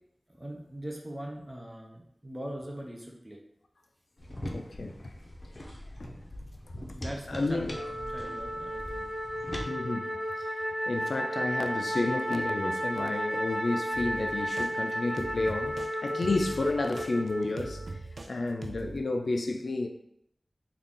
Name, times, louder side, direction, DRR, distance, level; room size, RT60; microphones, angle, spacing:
voice 1, 0.3-3.4 6.9-9.2, right 1 dB, 20° right, 0.7 m, -41 dB
sound 1, 4.2-9.7, left 1 dB, 45° left, 0.6 m, -41 dB
voice 2, 4.5-5.0 7.3-7.8 9.7-10.5 10.9-18.0 18.3-19.9, left 2 dB, 80° left, 0.3 m, -31 dB
Wind instrument woodwind instrument, 7.7-18.0, equal, 5° left, 0.9 m, -33 dB
sound 2, 13.9-14.7 15.2-15.9 16.2-18.3 18.6-19.0, right 2 dB, 85° right, 0.3 m, -41 dB
3.7 x 2.4 x 3.6 m
wide cardioid pair, 70°, 0 cm